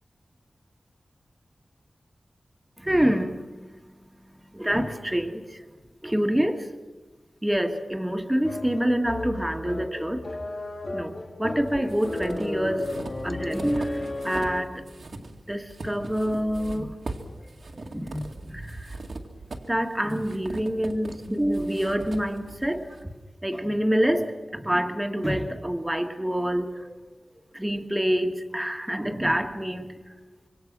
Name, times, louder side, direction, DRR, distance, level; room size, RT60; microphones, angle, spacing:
voice 1, 2.8-5.7 6.0-6.7 7.4-10.3 10.9-12.9 13.2-14.8 15.2-16.9 17.7-19.0 19.7-23.1 23.4-27.0 27.5-30.1, equal, 10° right, 1.8 m, -27 dB
sound 1, 8.4-14.9, left 2 dB, 50° left, 2.2 m, -34 dB
sound 2, 11.6-14.6 14.9-23.0, right 2 dB, 70° right, 2.2 m, -40 dB
26.0 x 24.5 x 6.2 m
wide cardioid pair, 80°, 0 cm